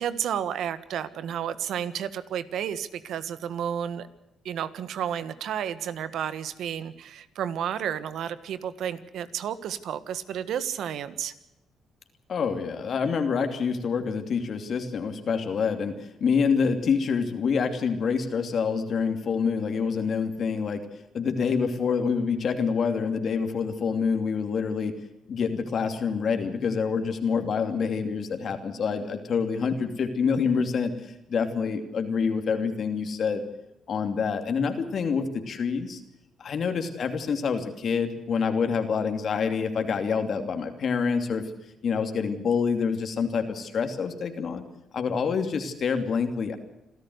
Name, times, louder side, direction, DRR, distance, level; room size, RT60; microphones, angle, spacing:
voice 1, 0.0-4.1 4.4-11.3, right 9 dB, 75° right, 14 dB, 1.5 m, -31 dB
voice 2, 12.3-20.8 21.1-25.0 25.3-30.9 31.3-33.4 33.9-36.0 36.4-41.4 41.8-44.6 44.9-46.6, left 5 dB, 55° left, 6 dB, 2.8 m, -27 dB
27.0 x 13.0 x 8.0 m, 0.90 s
cardioid pair, 90°, 0 cm